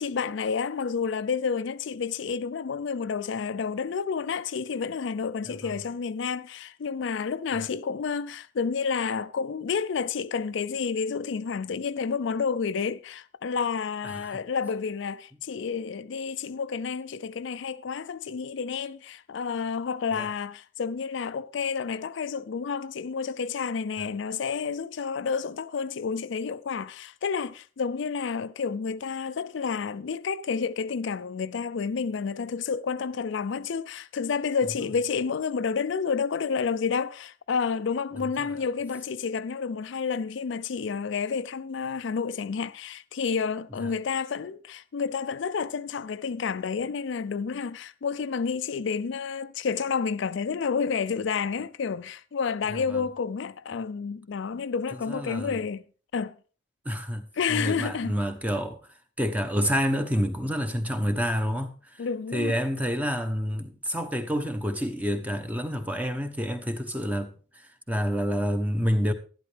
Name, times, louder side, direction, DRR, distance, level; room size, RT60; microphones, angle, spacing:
voice 1, 0.0-55.8 56.1-56.4 57.3-58.1 62.0-62.6, left 5 dB, 65° left, 0.4 m, -30 dB
voice 2, 55.1-55.6 56.8-57.2 57.5-58.8 59.2-62.0 62.3-67.3 67.9-69.1, equal, 10° right, 0.9 m, -28 dB
11.5 x 11.5 x 3.4 m
head